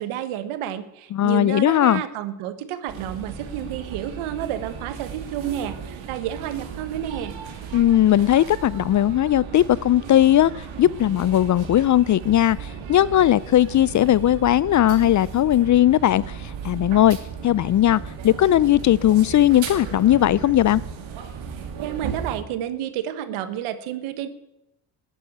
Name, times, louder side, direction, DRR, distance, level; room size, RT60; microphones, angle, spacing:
voice 1, 0.0-7.4 21.8-24.3, right 11 dB, 85° right, 1.5 m, -30 dB
voice 2, 1.1-2.0 7.7-10.5 10.8-17.2 17.4-20.8, left 12 dB, 40° left, 0.4 m, -18 dB
sound 1, 2.9-22.4, right 7 dB, 70° right, 2.7 m, -36 dB
13.0 x 9.9 x 8.6 m
cardioid pair, 95°, 49 cm